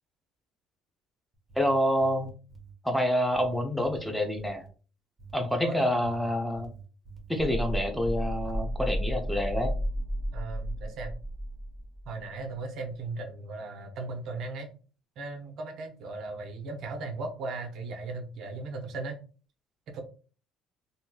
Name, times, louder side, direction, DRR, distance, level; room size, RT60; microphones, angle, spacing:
sound 1, 1.3-2.8 3.3-4.7 5.2-5.6 6.0-8.2 8.4-9.1, right 5 dB, 25° right, 1.1 m, -48 dB
voice 1, 1.6-2.3 2.8-4.6 5.3-6.7 7.3-9.7, equal, ahead, 4 dB, 0.6 m, -27 dB
voice 2, 5.6-6.1 10.3-11.1 12.1-14.7 15.2-19.2 19.9-20.0, right 3 dB, 65° right, 4 dB, 0.7 m, -37 dB
sound 2, 7.4-12.3 12.5-12.6, equal, 20° left, 1.4 m, -33 dB
3.0 x 2.7 x 2.2 m, 0.38 s
supercardioid pair, 90°, 0 cm